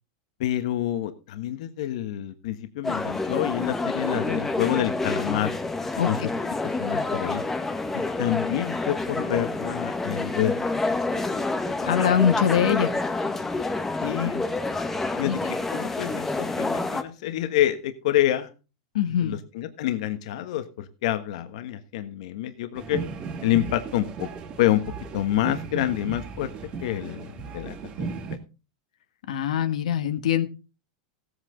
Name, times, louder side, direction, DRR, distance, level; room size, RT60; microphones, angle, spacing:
voice 1, 0.4-5.5 6.0-6.2 6.8-7.4 7.9-10.5 10.8-11.0 14.0-14.4 15.2-18.5 19.2-23.0 23.4-24.3 24.6-24.8 25.1-26.5 26.8-28.1, left 13 dB, 65° left, 9 dB, 1.4 m, -27 dB
sound 1, 2.8-17.0, left 3 dB, 10° left, 1.1 m, -28 dB
voice 2, 6.0-6.3 11.9-12.9 15.2-15.4 18.9-19.3 29.3-30.5, left 9 dB, 90° left, 9 dB, 1.5 m, -23 dB
sound 2, 22.7-28.4, right 5 dB, 25° right, 2.1 m, -36 dB
17.0 x 8.2 x 3.8 m, 0.32 s
supercardioid pair, 160°, 4 cm